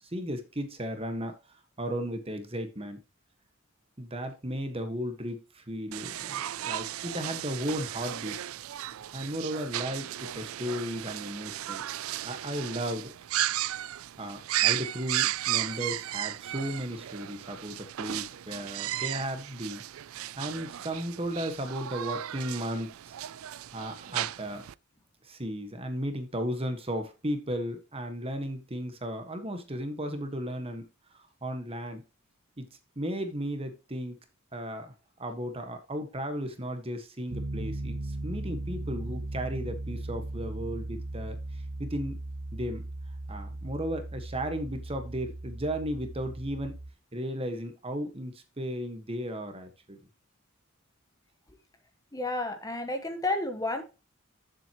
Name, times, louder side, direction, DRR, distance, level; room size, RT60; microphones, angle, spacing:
voice 1, 0.1-3.0 4.0-8.4 9.1-11.8 12.2-13.1 14.2-19.8 20.4-23.2 23.7-24.6 25.2-30.9 31.1-32.0 32.6-32.7 32.9-34.2 34.5-34.9 35.2-42.2 42.5-42.9 43.3-46.8 47.1-50.0, equal, 25° right, 6 dB, 1.4 m, -35 dB
sound 1, 5.9-24.7, right 13 dB, 85° right, 0.4 m, -35 dB
Piano, 37.3-46.9, right 2 dB, 65° right, 1.0 m, -37 dB
voice 2, 52.1-53.8, left 2 dB, 15° left, 6 dB, 1.3 m, -31 dB
10.5 x 7.5 x 3.0 m, 0.30 s
head